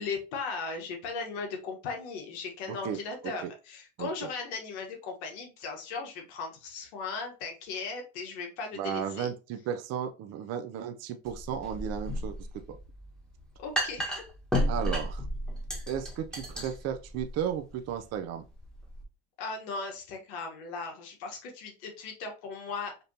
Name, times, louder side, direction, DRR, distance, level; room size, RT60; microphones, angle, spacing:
voice 1, 0.0-9.3 13.6-14.2 19.4-23.0, left 4 dB, 80° left, 3 dB, 1.3 m, -37 dB
voice 2, 8.8-12.8 14.7-15.2 15.9-18.4, right 8 dB, 50° right, 6 dB, 0.6 m, -34 dB
sound 1, 11.3-19.0, equal, ahead, 1.4 m, -34 dB
5.2 x 2.8 x 2.8 m, 0.31 s
supercardioid pair, 105°, 33 cm